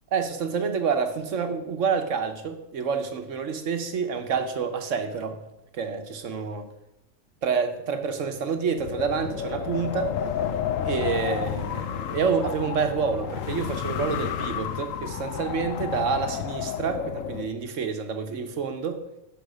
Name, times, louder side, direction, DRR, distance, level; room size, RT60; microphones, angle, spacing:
voice 1, 0.1-5.4 5.7-6.7 7.4-10.1 10.8-19.0, right 5 dB, 65° right, 7 dB, 1.3 m, -28 dB
Wind, 8.8-17.5, left 9 dB, 70° left, 1.0 m, -31 dB
10.5 x 5.4 x 6.4 m, 0.88 s
omnidirectional pair, 1.5 m